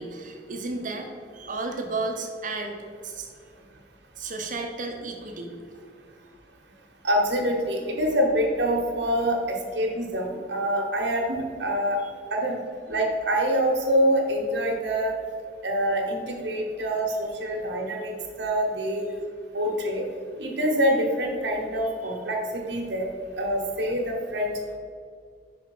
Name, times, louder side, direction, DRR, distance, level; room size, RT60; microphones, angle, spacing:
voice 1, 0.0-3.3 4.2-5.5 12.0-12.1 17.6-17.7, right 3 dB, 50° right, 3 dB, 0.9 m, -33 dB
voice 2, 7.0-12.0 12.3-12.6 12.9-15.2 15.6-18.1 18.4-19.1 19.5-20.0 20.4-23.1 23.4-24.5, equal, 75° right, 0 dB, 1.2 m, -25 dB
5.4 x 5.1 x 4.7 m, 2.1 s
head